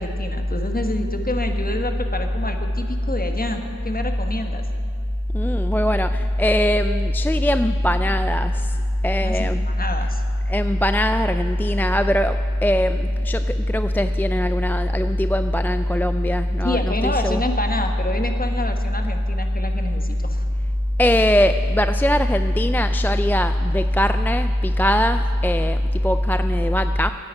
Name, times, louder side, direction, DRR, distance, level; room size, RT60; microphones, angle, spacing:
voice 1, 0.0-4.6 9.2-10.2 16.6-20.4, left 1 dB, 25° left, 5 dB, 1.3 m, -28 dB
voice 2, 5.3-8.8 9.0-9.7 10.5-12.4 12.6-17.4 21.0-27.1, left 1 dB, 5° left, 9 dB, 0.3 m, -20 dB
9.9 x 9.6 x 9.1 m, 2.3 s
wide cardioid pair, 60°, 35 cm